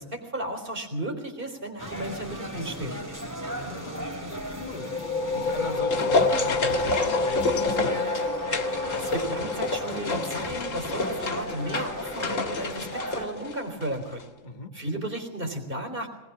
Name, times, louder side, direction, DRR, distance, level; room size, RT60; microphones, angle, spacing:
voice 1, 0.0-3.0 9.0-14.2 14.7-16.1, right 1 dB, 40° right, 4 dB, 4.0 m, -34 dB
sound 1, 1.8-13.3, equal, 15° right, 2.6 m, -36 dB
voice 2, 3.5-8.3 14.4-14.8, left 2 dB, 35° left, 5 dB, 1.7 m, -40 dB
sound 2, 4.6-14.0, left 3 dB, 85° left, 2.1 m, -31 dB
sound 3, 5.3-13.9 14.2-14.3, left 3 dB, 70° left, 2.1 m, -30 dB
20.5 x 19.0 x 7.3 m, 1.1 s
omnidirectional pair, 1.4 m